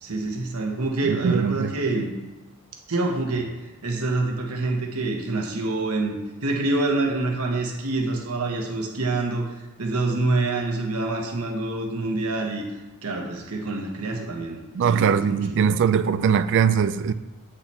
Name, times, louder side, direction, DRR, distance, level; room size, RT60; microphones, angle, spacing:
voice 1, 0.0-2.1 2.9-3.6 3.8-9.5 9.8-12.6 13.0-15.7, right 2 dB, 80° right, 1.3 m, -26 dB
voice 2, 1.0-1.7 14.7-17.1, right 7 dB, 55° right, 0.3 m, -21 dB
8.5 x 5.6 x 3.4 m
head